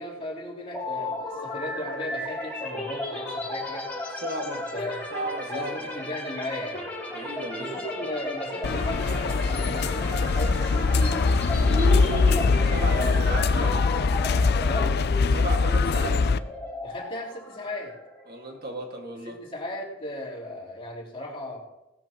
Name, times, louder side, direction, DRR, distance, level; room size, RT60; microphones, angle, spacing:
voice 1, 0.0-3.9 4.7-5.2 5.5-6.8 7.6-11.3 12.9-13.7 14.6-15.0 16.8-17.9 19.3-21.6, left 1 dB, 30° left, -6 dB, 3.9 m, -36 dB
sound 1, 0.7-18.5, left 1 dB, 10° left, 4.5 m, -35 dB
voice 2, 4.2-4.7 5.1-5.9 7.1-8.1 11.6-13.7 15.3-16.2 18.3-19.4, right 1 dB, 50° right, 1 dB, 2.1 m, -33 dB
sound 2, 8.6-16.4, left 4 dB, 55° left, 0.5 m, -22 dB
18.5 x 13.5 x 3.1 m, 0.94 s
head